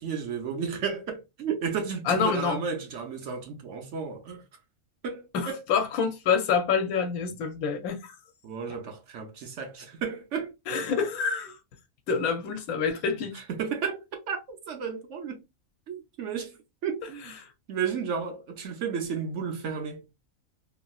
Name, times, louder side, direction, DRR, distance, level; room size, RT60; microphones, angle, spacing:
voice 1, 0.0-4.4 5.0-5.6 8.4-10.5 13.3-15.4 15.9-16.6 16.8-17.4 17.7-20.1, right 6 dB, 65° right, 0.9 m, -33 dB
voice 2, 2.1-2.6 5.3-8.2 10.7-11.6 12.1-13.3 17.4-17.5, left 6 dB, 85° left, 1.1 m, -27 dB
3.1 x 2.6 x 2.3 m
omnidirectional pair, 1.5 m